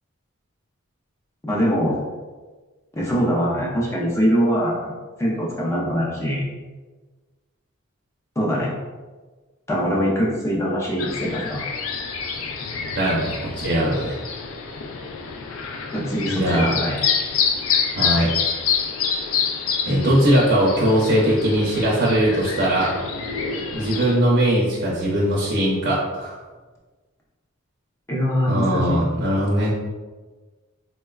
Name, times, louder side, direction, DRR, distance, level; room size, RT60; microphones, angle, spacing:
voice 1, 1.4-2.0 2.9-4.9 5.2-6.4 8.4-8.8 9.7-11.7 15.9-17.0 28.1-29.0, equal, 15° left, -4 dB, 0.5 m, -22 dB
sound 1, 11.0-24.2, left 6 dB, 75° left, 0.4 m, -27 dB
voice 2, 13.0-14.2 16.3-16.7 17.9-18.3 19.9-22.9 23.7-26.3 28.5-29.7, right 1 dB, 55° right, -5 dB, 0.6 m, -20 dB
3.9 x 2.2 x 2.3 m, 1.3 s
head